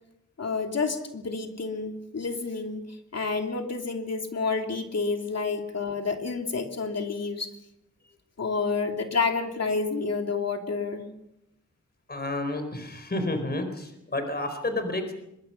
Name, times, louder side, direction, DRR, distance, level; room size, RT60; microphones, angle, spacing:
voice 1, 0.4-2.8 3.1-7.5 8.4-11.1, left 4 dB, 55° left, 4 dB, 2.9 m, -29 dB
voice 2, 12.1-15.1, left 2 dB, 35° left, 7 dB, 4.2 m, -30 dB
25.0 x 22.5 x 5.7 m, 0.83 s
wide cardioid pair, 145°, 30 cm